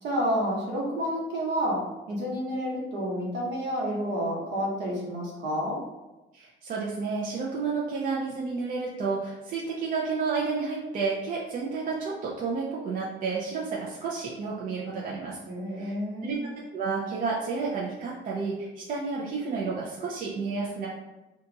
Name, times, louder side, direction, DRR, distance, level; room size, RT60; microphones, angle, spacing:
voice 1, 0.0-5.8 14.9-15.0 15.4-16.4, equal, 60° right, -4 dB, 1.0 m, -30 dB
voice 2, 6.3-15.4 15.7-15.9 16.2-16.4 16.7-20.9, right 4 dB, 40° right, -4 dB, 0.4 m, -31 dB
2.8 x 2.3 x 3.8 m, 1.1 s
cardioid pair, 175°, 20 cm